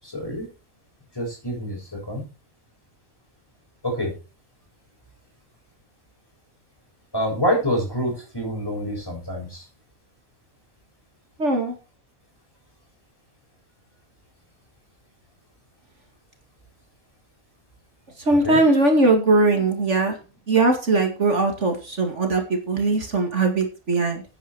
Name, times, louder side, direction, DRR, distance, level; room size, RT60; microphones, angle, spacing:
voice 1, 0.0-0.5 1.1-2.2 3.8-4.1 7.1-9.7 18.3-18.6 19.4-19.7, equal, 15° left, -1 dB, 7.8 m, -27 dB
voice 2, 11.4-11.7 18.2-20.2 20.5-24.2, right 2 dB, 65° right, 4 dB, 2.6 m, -20 dB
11.5 x 9.7 x 4.7 m, 0.32 s
omnidirectional pair, 1.3 m